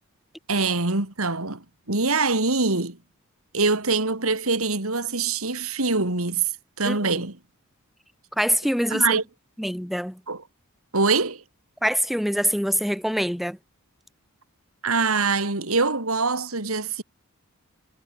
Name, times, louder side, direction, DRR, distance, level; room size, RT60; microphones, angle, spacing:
voice 1, 0.5-3.0 3.5-6.5 6.8-7.4 8.9-9.2 10.3-10.4 10.9-11.4 14.8-17.0, right 3 dB, 70° right, 3.1 m, -24 dB
voice 2, 6.8-7.2 8.4-9.2 9.6-10.2 11.8-13.6, equal, ahead, 2.3 m, -24 dB
head